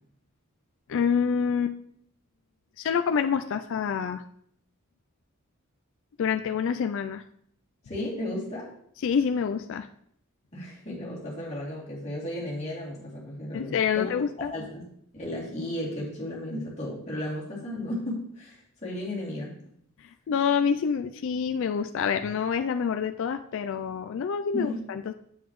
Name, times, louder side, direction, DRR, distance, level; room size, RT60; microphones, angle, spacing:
voice 1, 0.9-1.8 2.8-4.2 6.2-7.2 9.0-9.9 13.5-14.5 20.0-25.1, left 6 dB, 60° left, 8 dB, 0.3 m, -27 dB
voice 2, 7.9-8.7 10.5-14.1 14.4-14.8 15.1-19.5 24.5-24.8, left 1 dB, 30° left, -6 dB, 2.7 m, -34 dB
7.9 x 7.2 x 3.1 m, 0.67 s
head